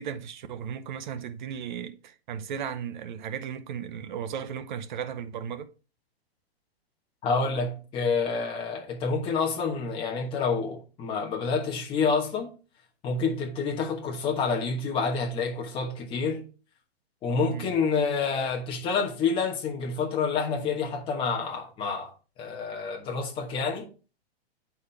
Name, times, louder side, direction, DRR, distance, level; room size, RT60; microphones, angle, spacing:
voice 1, 0.0-5.7 17.5-17.7, right 8 dB, 50° right, 0.8 m, -36 dB
voice 2, 7.2-12.5 13.0-16.5 17.2-22.1 22.4-23.9, left 5 dB, 15° left, 1.2 m, -28 dB
9.5 x 4.4 x 3.3 m
hypercardioid pair, 160°, 31 cm